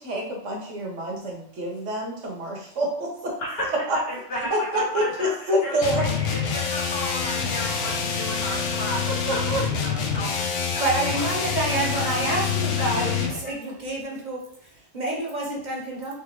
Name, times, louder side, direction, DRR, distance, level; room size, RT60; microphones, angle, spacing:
voice 1, 0.0-3.3 3.9-4.0 4.5-6.0 9.1-9.6, equal, 70° right, 0 dB, 1.3 m, -27 dB
voice 2, 3.4-3.7 4.1-11.3 11.9-12.4 12.8-13.6, equal, 55° left, -3 dB, 1.3 m, -34 dB
sound 1, 5.8-13.4, left 6 dB, 75° left, 1.0 m, -26 dB
voice 3, 10.8-16.1, right 2 dB, 40° right, -3 dB, 0.9 m, -28 dB
3.9 x 3.2 x 3.0 m, 0.68 s
omnidirectional pair, 1.3 m